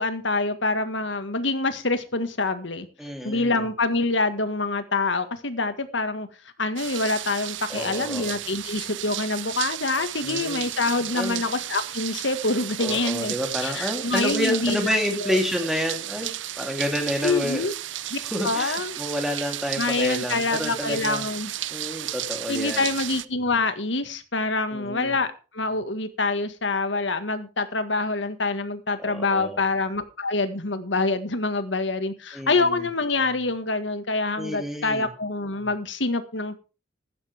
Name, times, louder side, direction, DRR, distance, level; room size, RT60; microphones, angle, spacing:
voice 1, 0.0-2.9 3.2-6.3 6.6-13.4 13.6-15.4 17.2-17.7 18.1-19.0 19.8-21.5 22.5-36.6, left 3 dB, 80° left, 1.8 m, -26 dB
voice 2, 3.0-3.7 7.7-8.3 10.2-10.6 11.1-11.4 12.8-16.3 16.6-17.6 18.2-21.2 21.7-22.8 24.7-25.1 29.0-29.6 32.3-32.9 34.4-35.1, equal, ahead, 3.3 m, -29 dB
sound 1, 6.8-23.3, right 13 dB, 80° right, 0.7 m, -33 dB
15.5 x 11.5 x 3.6 m
head